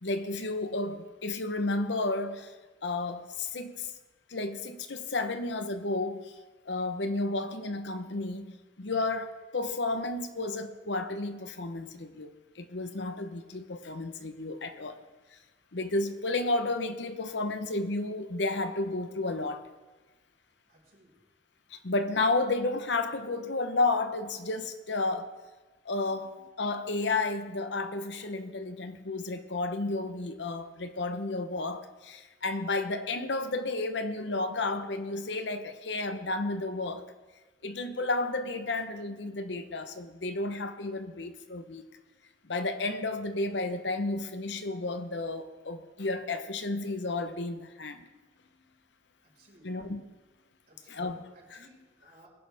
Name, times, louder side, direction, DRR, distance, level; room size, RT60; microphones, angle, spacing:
voice 1, 0.0-2.5 2.8-3.9 4.3-6.3 6.7-15.0 15.3-15.4 15.7-19.7 21.7-25.3 25.8-37.1 37.6-41.8 42.4-48.0 49.6-50.0 50.9-51.6, left 2 dB, 75° left, 1.0 m, -32 dB
voice 2, 20.7-21.1 49.2-49.8 50.7-51.0 51.3-52.3, right 1 dB, 55° right, 5.1 m, -59 dB
20.5 x 11.0 x 3.5 m
head